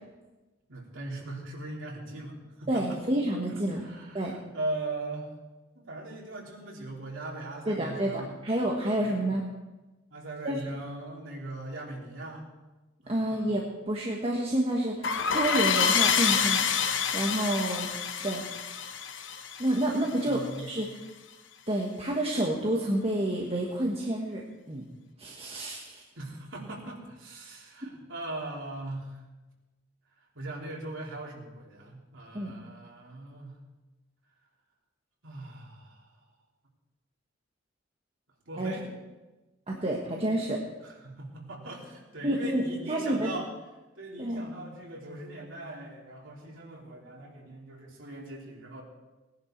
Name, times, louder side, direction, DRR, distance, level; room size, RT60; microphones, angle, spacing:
voice 1, 0.7-2.8 3.8-5.3 5.8-8.4 9.0-9.1 10.1-12.4 13.0-13.2 20.1-20.7 26.2-29.2 30.4-33.6 35.2-36.1 38.5-38.9 40.8-43.5 44.0-48.8, right 2 dB, 85° right, -2 dB, 3.4 m, -40 dB
voice 2, 2.7-3.8 4.1-4.3 7.7-9.4 10.4-10.6 13.1-16.7 17.1-17.9 18.2-18.4 19.6-21.0 21.7-24.4 24.7-24.8 25.2-26.0 32.3-32.5 38.6-38.8 39.7-40.6 42.2-43.3 44.2-44.4, right 1 dB, 30° right, -1 dB, 1.4 m, -29 dB
sound 1, 15.0-20.3, left 7 dB, 70° left, 1.0 m, -27 dB
19.0 x 10.5 x 4.6 m, 1.1 s
head